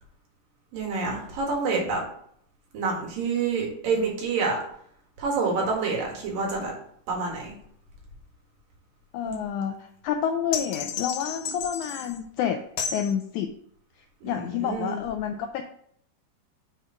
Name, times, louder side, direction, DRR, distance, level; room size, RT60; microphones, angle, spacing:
voice 1, 0.7-2.0 2.7-4.6 5.2-6.7 7.1-7.5 9.2-9.5 11.5-11.6 14.2-15.0, right 4 dB, 80° right, -1 dB, 3.5 m, -28 dB
voice 2, 9.1-12.6 12.9-13.5 14.2-15.6, left 8 dB, 85° left, 6 dB, 1.7 m, -29 dB
sound 1, 10.5-12.2 12.8-13.1, left 7 dB, 70° left, 2.0 m, -32 dB
6.7 x 4.3 x 5.0 m, 0.66 s
omnidirectional pair, 3.9 m